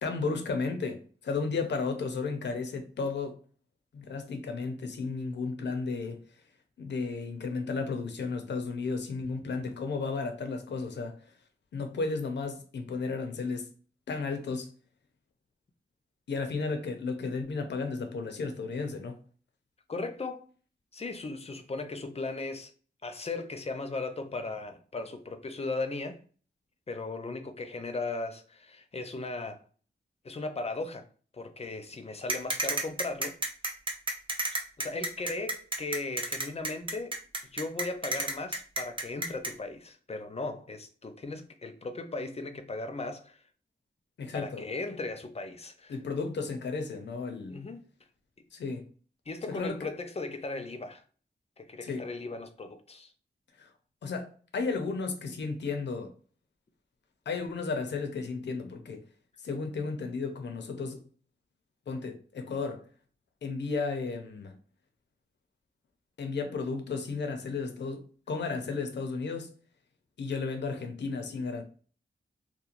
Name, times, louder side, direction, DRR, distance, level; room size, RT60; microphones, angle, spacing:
voice 1, 0.0-3.4 3.9-6.2 6.8-11.2 11.7-13.7 14.1-14.7 16.3-19.2 44.2-44.7 45.9-47.6 48.5-48.9 49.5-49.9 51.8-52.1 53.6-53.7 54.0-56.1 57.3-59.0 59.4-61.0 61.9-62.9 63.4-64.5 66.2-69.5 70.2-71.6, left 4 dB, 80° left, 0.5 m, -33 dB
voice 2, 19.9-20.5 20.9-22.7 23.0-26.2 26.9-29.6 30.2-31.0 31.3-33.4 34.8-37.2 37.5-43.4 44.3-45.9 47.5-47.8 49.3-51.0 51.6-53.1, left 3 dB, 35° left, 0.5 m, -37 dB
sound 1, 32.3-39.5, right 2 dB, 30° right, 0.5 m, -31 dB
3.0 x 2.1 x 2.5 m
cardioid pair, 60°, 18 cm